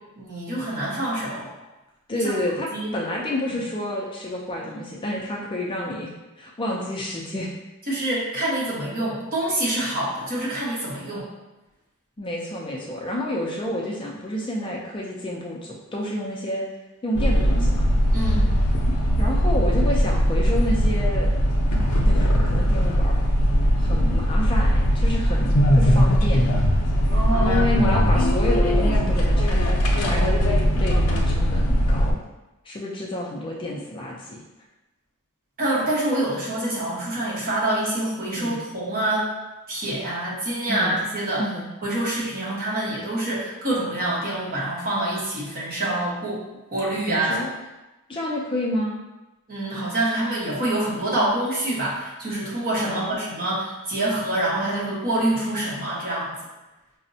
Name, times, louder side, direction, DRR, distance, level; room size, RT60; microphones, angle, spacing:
voice 1, 0.2-1.5 2.1-2.3 2.7-2.9 3.5-3.6 7.9-11.3 18.1-18.5 27.1-27.5 35.6-39.3 39.7-41.4 41.8-46.4 46.7-47.3 49.5-56.4, right 1 dB, 40° right, -6 dB, 1.0 m, -26 dB
voice 2, 2.1-6.1 6.4-7.5 12.2-16.7 17.0-17.9 19.2-21.3 22.1-23.1 23.8-26.5 27.4-32.2 32.7-34.4 38.4-38.6 40.7-41.0 41.4-41.7 47.1-47.5 48.1-49.0 52.8-53.3, left 1 dB, 20° left, -2 dB, 0.4 m, -29 dB
sound 1, 17.1-32.1, equal, 85° left, 0.5 m, -20 dB
5.0 x 2.0 x 2.6 m, 1.0 s
head